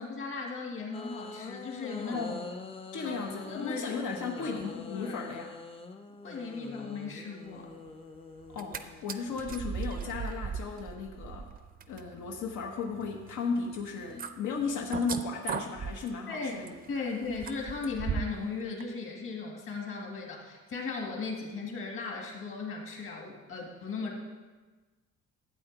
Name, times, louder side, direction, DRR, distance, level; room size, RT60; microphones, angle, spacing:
voice 1, 0.0-2.3 3.0-3.1 3.5-4.0 4.4-5.2 6.2-7.7 16.3-24.2, left 4 dB, 45° left, 0 dB, 1.8 m, -37 dB
sound 1, 0.9-9.4, left 3 dB, 20° left, 0.5 m, -45 dB
voice 2, 2.0-2.5 2.9-5.6 8.5-11.5 11.9-16.7, left 5 dB, 90° left, 1 dB, 1.2 m, -35 dB
sound 2, 8.4-8.8 9.1-18.5 18.8-18.9, right 6 dB, 30° right, 0.4 m, -39 dB
13.0 x 8.6 x 3.9 m, 1.3 s
cardioid pair, 180°, 29 cm